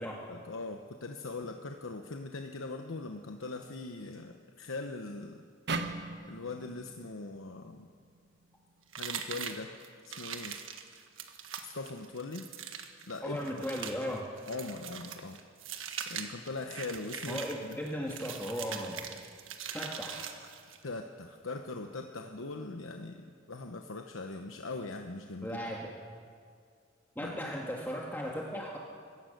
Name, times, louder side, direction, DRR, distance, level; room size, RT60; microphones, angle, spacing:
voice 1, 0.3-5.4 6.2-7.9 9.0-9.7 10.1-10.6 11.6-12.5 13.1-13.4 14.5-15.4 16.1-17.8 20.8-25.6 27.2-27.5, left 3 dB, 90° left, 5 dB, 1.0 m, -41 dB
sound 1, 5.7-8.9, right 3 dB, 60° right, 1.2 m, -40 dB
sound 2, 8.9-20.8, right 7 dB, 80° right, 1.5 m, -42 dB
voice 2, 13.2-14.2 17.3-19.0 19.7-20.3 25.4-25.9 27.1-28.8, equal, 10° left, -1 dB, 1.7 m, -36 dB
25.0 x 15.5 x 6.6 m, 2.2 s
head